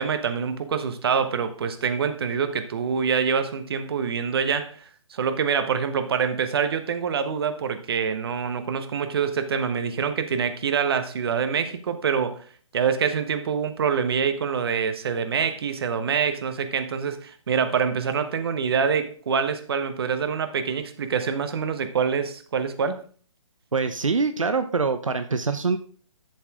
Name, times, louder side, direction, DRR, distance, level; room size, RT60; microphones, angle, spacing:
voice 1, 0.0-12.5 12.7-23.0, right 6 dB, 50° right, 9 dB, 1.3 m, -25 dB
voice 2, 23.7-25.8, right 4 dB, 80° right, 10 dB, 0.9 m, -24 dB
11.5 x 7.1 x 3.7 m, 0.43 s
figure-of-eight pair, 140°, 16 cm